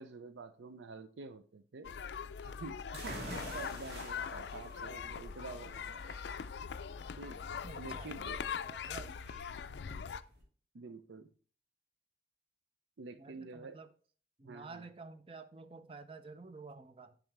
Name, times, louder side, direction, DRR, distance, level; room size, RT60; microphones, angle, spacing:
voice 1, 0.0-1.9 2.4-6.2 7.2-7.4 7.8-8.4 10.7-11.3 13.0-13.8 14.4-14.9, right 4 dB, 90° right, 0.5 m, -48 dB
sound 1, 1.8-10.2, left 6 dB, 75° left, 0.4 m, -42 dB
sound 2, 2.9-10.4, right 1 dB, 65° right, 2.5 m, -49 dB
voice 2, 7.6-8.1 8.6-9.1 9.7-10.1 13.2-13.9 14.4-17.2, right 4 dB, 30° right, 0.5 m, -51 dB
sound 3, 8.6-10.1, equal, 10° right, 2.6 m, -65 dB
7.2 x 6.0 x 3.4 m
head